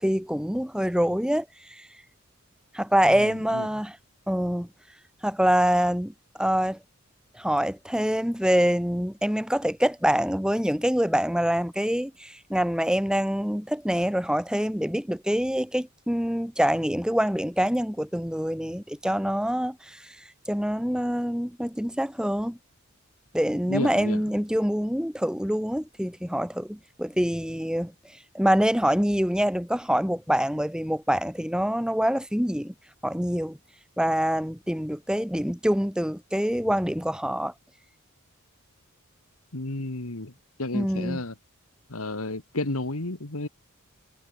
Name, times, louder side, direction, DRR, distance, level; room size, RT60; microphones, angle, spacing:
voice 1, 0.0-1.9 2.7-4.0 4.3-4.7 5.2-6.8 7.3-20.0 20.5-22.6 23.3-27.9 28.3-32.7 33.0-33.6 34.0-37.5 40.7-41.2, equal, 5° right, 3.9 m, -25 dB
voice 2, 3.0-3.7 23.7-24.2 39.5-40.3 40.6-41.3 41.9-43.5, left 2 dB, 70° left, 2.2 m, -32 dB
head